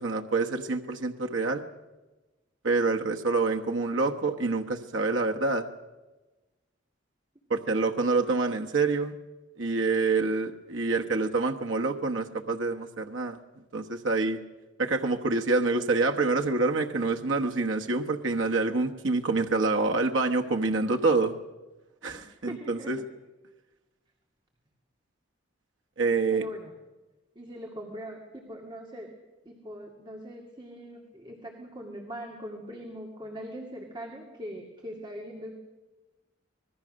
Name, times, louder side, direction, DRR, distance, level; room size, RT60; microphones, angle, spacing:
voice 1, 0.0-1.6 2.6-5.7 7.5-9.1 9.6-13.4 13.7-14.4 14.8-21.3 22.0-23.0 26.0-26.5, right 3 dB, 85° right, 3 dB, 1.2 m, -27 dB
voice 2, 22.0-22.9 26.0-26.7 27.4-29.1 29.5-35.5, equal, 25° right, 1 dB, 2.2 m, -41 dB
25.5 x 20.0 x 6.4 m, 1.1 s
head